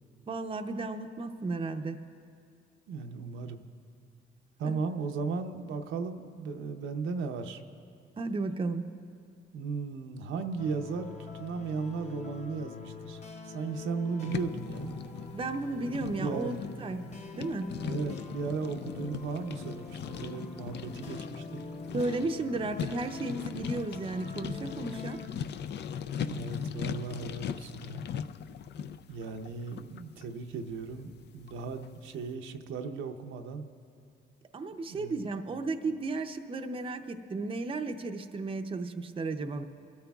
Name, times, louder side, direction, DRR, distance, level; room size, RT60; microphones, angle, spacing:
voice 1, 0.3-2.0 4.6-4.7 8.2-8.9 15.3-17.1 17.3-17.8 21.9-25.2 34.5-39.6, right 3 dB, 25° right, 6 dB, 0.6 m, -34 dB
voice 2, 2.9-3.6 4.6-7.6 9.5-15.0 15.8-16.6 17.8-21.6 26.2-28.1 29.1-33.7 34.9-35.4, right 4 dB, 80° right, 5 dB, 0.7 m, -36 dB
sound 1, 10.6-25.3, left 3 dB, 35° left, 1.1 m, -45 dB
sound 2, 14.3-31.9, left 8 dB, 60° left, 0.4 m, -39 dB
27.0 x 13.0 x 2.4 m, 2.3 s
cardioid pair, 90°, 20 cm